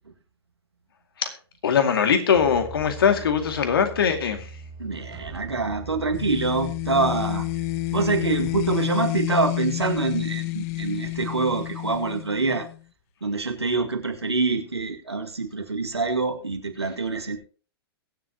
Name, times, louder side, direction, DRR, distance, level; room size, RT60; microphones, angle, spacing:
voice 1, 1.6-4.5, left 7 dB, 65° left, 7 dB, 2.3 m, -21 dB
sound 1, 2.3-8.8, right 4 dB, 25° right, 1.5 m, -41 dB
voice 2, 4.8-7.4 7.9-12.7 13.2-17.4, right 3 dB, 85° right, 4 dB, 2.1 m, -25 dB
sound 2, 6.1-12.8, left 21 dB, 40° left, 0.4 m, -29 dB
22.0 x 7.7 x 2.9 m, 0.37 s
figure-of-eight pair, 105°, 13 cm